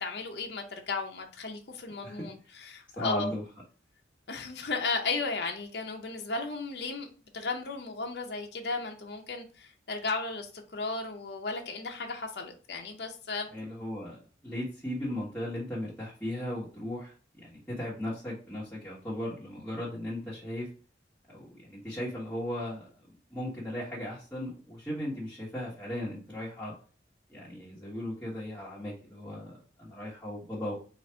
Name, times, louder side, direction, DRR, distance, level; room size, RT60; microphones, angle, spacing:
voice 1, 0.0-3.3 4.3-7.1 7.3-13.5, left 3 dB, 60° left, 0.7 m, -35 dB
voice 2, 3.0-3.4 13.5-14.2 14.4-20.7 21.3-22.9 23.3-26.7 27.3-30.8, left 1 dB, 10° left, 1.3 m, -37 dB
4.0 x 2.4 x 4.4 m
head